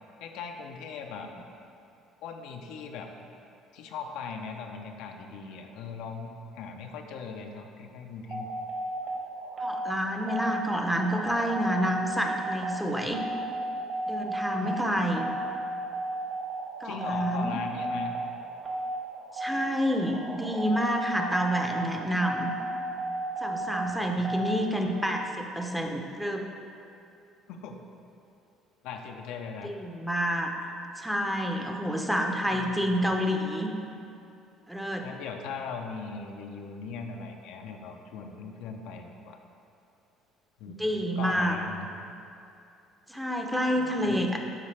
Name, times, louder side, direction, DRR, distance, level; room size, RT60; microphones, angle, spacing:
voice 1, 0.2-1.3 2.2-3.1 3.7-8.5 14.6-14.9 16.8-18.2 23.9-24.5 27.5-27.8 28.8-29.8 32.3-33.1 35.0-39.4 40.6-40.8 41.2-41.9 43.8-44.2, left 5 dB, 80° left, 3 dB, 0.6 m, -39 dB
sound 1, 8.3-24.5, right 1 dB, 45° right, 1.4 m, -34 dB
voice 2, 9.6-13.2 14.1-15.3 16.8-17.6 19.3-22.5 23.4-26.5 29.6-30.5 31.0-33.7 34.7-35.1 40.7-41.6 43.1-44.4, equal, 5° right, 2 dB, 0.6 m, -28 dB
11.0 x 4.1 x 3.3 m, 2.6 s
cardioid pair, 105°, 0 cm